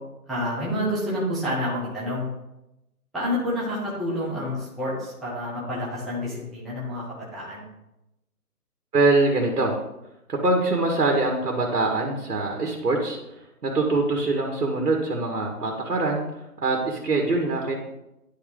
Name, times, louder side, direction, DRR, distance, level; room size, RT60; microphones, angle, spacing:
voice 1, 0.3-2.3 3.1-7.6, left 1 dB, ahead, -8 dB, 0.5 m, -28 dB
voice 2, 8.9-9.8 10.3-13.2 13.6-17.7, right 2 dB, 75° right, 1 dB, 1.9 m, -23 dB
11.0 x 3.9 x 3.7 m, 0.90 s
figure-of-eight pair, 160°, 47 cm